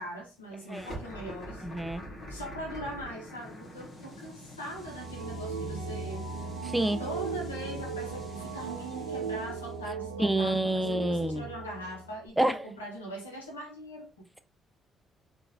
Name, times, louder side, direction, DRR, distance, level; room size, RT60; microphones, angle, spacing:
voice 1, 0.0-1.7 2.3-6.3 7.0-14.2, right 1 dB, 85° left, 0.9 m, -41 dB
sound 1, 0.7-9.8, equal, 50° left, 1.4 m, -46 dB
voice 2, 1.6-2.0 6.6-7.0 10.2-11.5 12.4-12.7, right 1 dB, 5° right, 0.5 m, -28 dB
sound 2, 4.7-12.3, right 4 dB, 85° right, 0.4 m, -38 dB
3.8 x 2.5 x 2.6 m
figure-of-eight pair, 45°, 0 cm